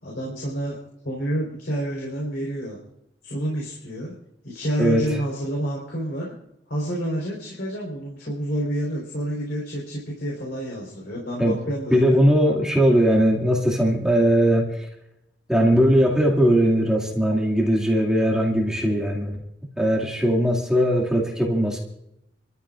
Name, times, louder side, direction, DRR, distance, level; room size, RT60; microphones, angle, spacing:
voice 1, 0.0-0.8 1.0-2.8 3.2-4.1 4.4-6.3 6.7-12.2, equal, 65° left, -4 dB, 4.3 m, -29 dB
voice 2, 11.9-14.7 15.5-19.4 19.8-21.8, equal, 5° right, -3 dB, 2.3 m, -19 dB
29.5 x 14.0 x 2.5 m, 0.83 s
head